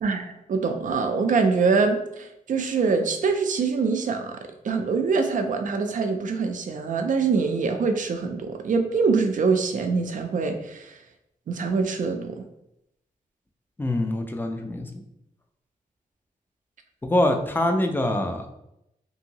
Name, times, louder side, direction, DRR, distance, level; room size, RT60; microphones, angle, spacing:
voice 1, 0.0-4.4 4.6-10.9 11.5-12.4, right 4 dB, 60° right, 6 dB, 0.4 m, -24 dB
voice 2, 13.8-14.9 17.0-18.5, left 1 dB, 15° left, 4 dB, 0.3 m, -24 dB
2.7 x 2.6 x 2.8 m, 0.82 s
wide cardioid pair, 145°, 15 cm